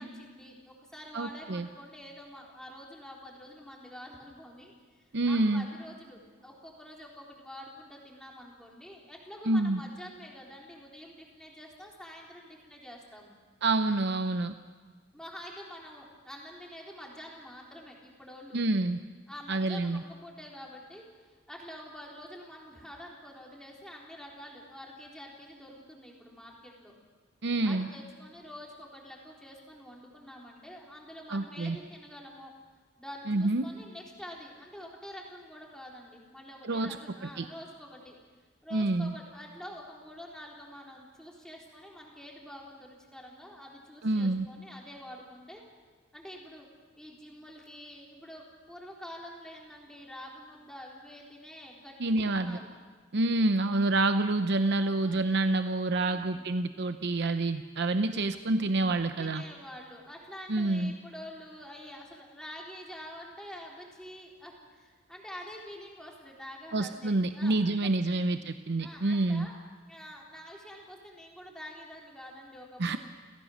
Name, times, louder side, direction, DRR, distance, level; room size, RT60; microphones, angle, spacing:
voice 1, 0.0-13.4 15.1-18.6 19.3-26.9 27.6-32.5 33.0-38.2 38.6-45.6 46.1-46.7 47.0-52.7 55.0-55.2 56.0-56.5 59.2-68.2 68.8-69.6 69.9-73.0, equal, 5° left, -2 dB, 3.8 m, -47 dB
voice 2, 1.1-1.7 5.1-5.7 9.5-9.8 13.6-14.5 18.5-19.0 19.5-20.0 27.4-27.9 31.3-31.8 33.3-33.7 36.6-37.0 37.4-37.5 38.7-39.1 44.0-44.5 52.0-52.6 53.1-59.4 60.5-60.9 66.7-69.5 72.8-73.0, right 2 dB, 60° right, 9 dB, 0.7 m, -27 dB
29.5 x 16.0 x 6.4 m, 1.4 s
head